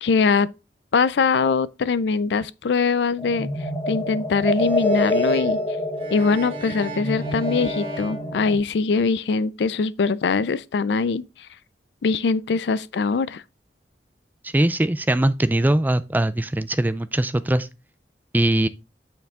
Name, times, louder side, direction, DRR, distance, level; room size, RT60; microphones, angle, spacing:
voice 1, 0.0-0.5 0.9-3.5 3.9-5.6 6.1-11.2 12.0-13.4, left 4 dB, 80° left, 0.4 m, -22 dB
sound 1, 3.2-8.6, left 1 dB, 20° left, 1.3 m, -26 dB
sound 2, 4.5-9.1, right 3 dB, 30° right, 1.4 m, -39 dB
voice 2, 14.4-17.7 18.3-18.7, right 1 dB, 10° right, 0.3 m, -21 dB
8.1 x 4.6 x 3.6 m
head